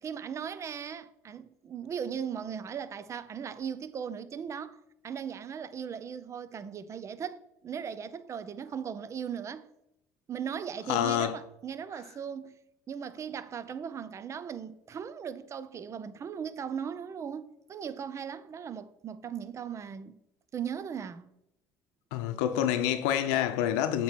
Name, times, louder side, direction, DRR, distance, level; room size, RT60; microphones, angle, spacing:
voice 1, 0.0-9.7 10.3-12.5 12.9-20.2 20.5-21.3, right 7 dB, 35° right, 0.5 m, -38 dB
voice 2, 10.9-11.4 22.1-24.0, left 10 dB, 80° left, 0.7 m, -27 dB
8.0 x 3.0 x 5.9 m
supercardioid pair, 85°, 9 cm